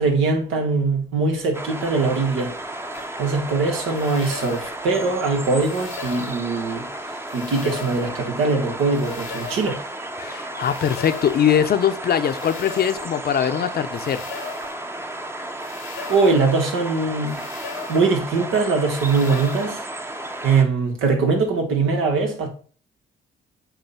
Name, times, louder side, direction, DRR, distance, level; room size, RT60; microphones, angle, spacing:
voice 1, 0.0-2.5 3.2-6.9 7.3-9.8 16.1-17.4 17.9-19.9 20.4-22.5, right 4 dB, 85° right, 1.9 m, -21 dB
sound 1, 1.5-20.6, right 1 dB, 10° right, 0.8 m, -33 dB
sound 2, 2.9-3.1 3.9-4.8 5.6-6.4 7.3-8.1 8.9-9.8 10.6-11.4 12.3-13.1 13.9-14.8 15.6-16.4 17.3-18.1 18.9-19.6, left 7 dB, 90° left, 1.3 m, -38 dB
voice 2, 10.2-14.2, left 9 dB, 50° left, 0.7 m, -21 dB
8.0 x 2.8 x 5.6 m
cardioid pair, 90°, 20 cm